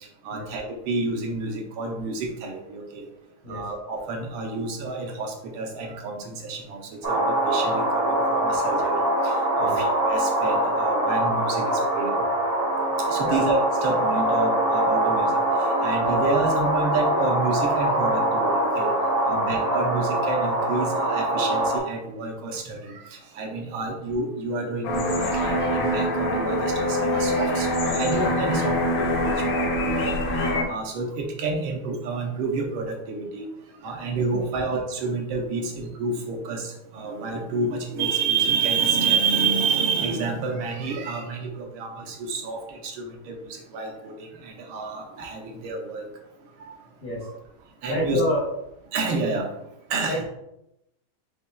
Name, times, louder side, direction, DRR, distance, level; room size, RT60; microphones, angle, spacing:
voice 1, 0.2-3.1 3.5-12.1 13.1-18.9 19.2-30.2 30.7-33.5 33.8-46.1 47.2-47.3 47.8-48.2 48.9-49.5 49.9-50.2, right 4 dB, 80° right, 2 dB, 1.6 m, -29 dB
sound 1, 7.0-21.8, right 1 dB, 50° right, 0.7 m, -23 dB
sound 2, 24.8-30.6, left 1 dB, 75° left, 1.7 m, -24 dB
voice 2, 47.9-48.4 50.1-50.2, left 1 dB, 45° left, -1 dB, 0.7 m, -28 dB
5.4 x 3.6 x 2.3 m, 0.86 s
omnidirectional pair, 2.3 m